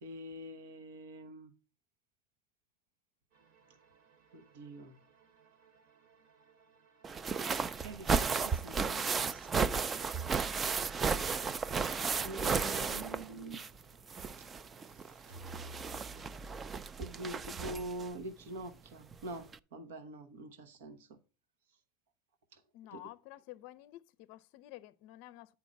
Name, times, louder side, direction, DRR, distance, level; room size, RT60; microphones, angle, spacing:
voice 1, 0.0-1.5 4.3-5.0 7.8-10.1 12.2-13.6 17.0-21.2 22.5-22.6 22.9-23.0, right 1 dB, 85° right, 1.0 m, -45 dB
sound 1, 3.3-18.3, right 3 dB, 70° right, 1.8 m, -56 dB
sound 2, 7.0-13.8 14.1-18.0 19.1-19.2 19.5-19.6, right 5 dB, 25° right, 0.4 m, -34 dB
voice 2, 22.7-25.5, left 16 dB, 60° left, 0.5 m, -51 dB
8.4 x 4.4 x 5.1 m
supercardioid pair, 120°, 0 cm